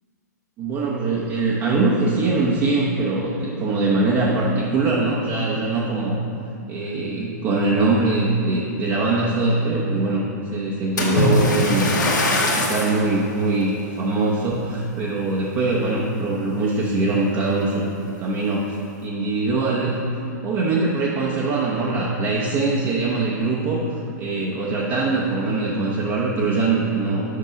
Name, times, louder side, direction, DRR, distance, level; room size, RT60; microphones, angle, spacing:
voice 1, 0.6-6.2 6.7-10.2 10.5-11.9 12.3-17.9 18.2-18.8 19.0-27.4, right 3 dB, 30° right, -5 dB, 0.9 m, -22 dB
Splash splatter, 11.0-13.0 13.7-13.9 14.5-14.6, left 2 dB, 90° left, 1.4 m, -20 dB
6.6 x 5.3 x 5.1 m, 2.6 s
hypercardioid pair, 125°, 10 cm